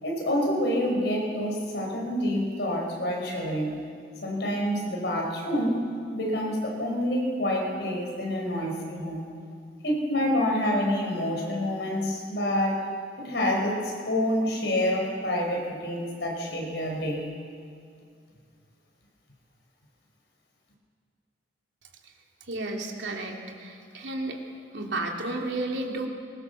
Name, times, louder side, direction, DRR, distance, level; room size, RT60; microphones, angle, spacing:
voice 1, 0.0-3.8 4.2-5.8 6.1-9.2 9.8-12.8 13.2-17.2, left 1 dB, 70° left, -1 dB, 5.5 m, -27 dB
voice 2, 22.5-24.4 24.7-26.1, right 2 dB, 80° right, 1 dB, 2.9 m, -32 dB
23.0 x 21.0 x 7.1 m, 2.3 s
head